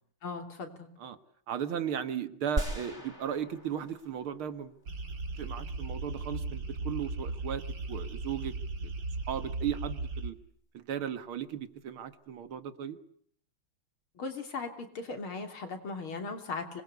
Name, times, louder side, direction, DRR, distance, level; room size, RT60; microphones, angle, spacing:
voice 1, 0.2-0.9 14.2-16.8, left 4 dB, 80° left, 5 dB, 4.1 m, -38 dB
voice 2, 1.5-4.7 5.4-7.6 7.9-8.5 8.8-8.9 9.3-10.4 10.7-13.0, right 9 dB, 80° right, 11 dB, 2.4 m, -36 dB
sound 1, 2.6-4.8, right 1 dB, 25° right, 6.6 m, -37 dB
sound 2, 4.9-10.3, right 3 dB, 60° right, 2.9 m, -37 dB
25.5 x 21.5 x 8.2 m, 0.63 s
omnidirectional pair, 2.3 m